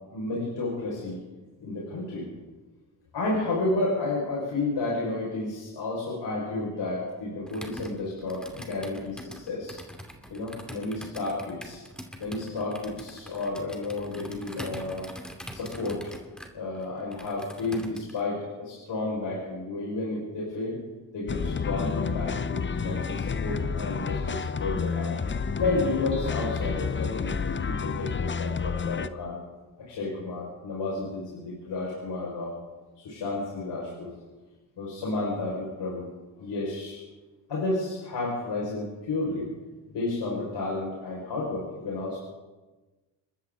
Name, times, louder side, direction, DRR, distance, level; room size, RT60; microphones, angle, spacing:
voice 1, 0.1-1.2 1.6-2.3 3.1-9.8 10.3-11.8 12.2-15.1 15.5-16.1 16.5-20.8 21.1-25.1 25.5-29.4 29.8-32.5 33.0-34.1 34.8-36.1 36.4-37.0 37.5-39.5 39.9-42.2, left 2 dB, 60° left, -5 dB, 6.0 m, -31 dB
Computer keyboard, 7.5-18.2, equal, ahead, 2.6 m, -43 dB
sound 1, 21.3-29.1, left 5 dB, 25° left, 0.8 m, -30 dB
27.5 x 13.0 x 4.1 m, 1.2 s
supercardioid pair, 55°, 46 cm